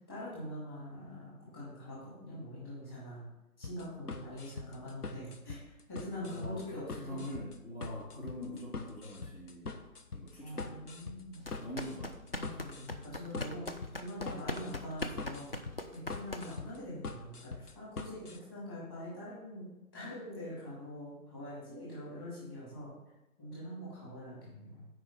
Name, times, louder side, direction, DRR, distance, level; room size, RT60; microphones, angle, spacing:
voice 1, 0.1-3.3 3.6-5.6 5.9-7.2 8.1-8.3 10.4-11.5 12.4-15.6 15.9-22.9 23.4-24.9, left 1 dB, 15° left, -8 dB, 2.1 m, -44 dB
sound 1, 3.6-18.4, left 3 dB, 90° left, 1.0 m, -44 dB
voice 2, 6.2-9.7 10.1-10.9 11.6-12.3, left 1 dB, 70° left, -4 dB, 2.8 m, -43 dB
sound 2, 11.4-16.8, left 2 dB, 40° left, 0.5 m, -41 dB
7.7 x 4.7 x 5.5 m, 0.97 s
figure-of-eight pair, 170°, 44 cm